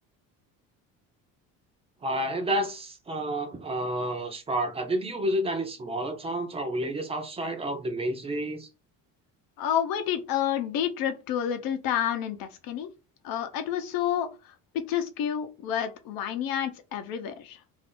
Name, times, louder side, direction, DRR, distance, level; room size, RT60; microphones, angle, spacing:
voice 1, 2.0-8.7, right 1 dB, 15° right, 0.5 m, -30 dB
voice 2, 9.6-12.9 13.2-14.3 14.7-17.6, left 9 dB, 75° left, 0.8 m, -29 dB
2.6 x 2.5 x 3.6 m
cardioid pair, 160°, 36 cm